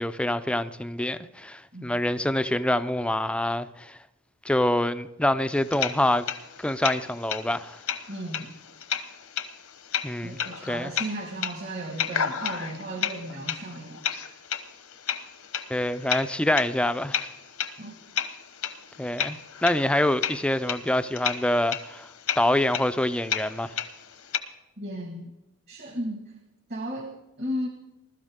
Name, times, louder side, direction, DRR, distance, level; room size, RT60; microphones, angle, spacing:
voice 1, 0.0-4.0 4.4-6.3 6.6-7.8 10.0-10.4 10.7-10.9 15.7-17.3 19.0-22.1 22.4-23.7, left 1 dB, 5° left, 0.5 m, -26 dB
sound 1, 5.5-24.4, left 8 dB, 75° left, 1.1 m, -33 dB
voice 2, 8.1-8.5 10.2-14.4 17.8-17.9 24.8-25.3 25.7-26.2 26.7-27.1 27.4-27.7, right 1 dB, 50° right, 1.8 m, -35 dB
20.5 x 13.0 x 3.7 m
head